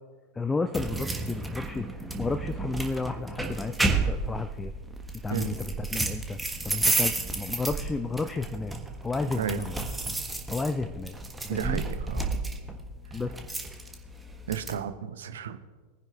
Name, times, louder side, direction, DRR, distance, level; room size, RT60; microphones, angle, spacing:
voice 1, 0.3-4.7 5.2-6.4 6.6-8.8 9.0-9.8 10.5-11.2 11.4-11.8 13.1-13.5, left 3 dB, 10° left, 9 dB, 0.4 m, -32 dB
sound 1, 0.7-14.8, right 3 dB, 10° right, 1.1 m, -32 dB
voice 2, 11.5-12.3 14.5-15.6, right 8 dB, 60° right, 11 dB, 0.7 m, -33 dB
21.5 x 10.0 x 2.4 m, 1.4 s
figure-of-eight pair, 90°, 0 cm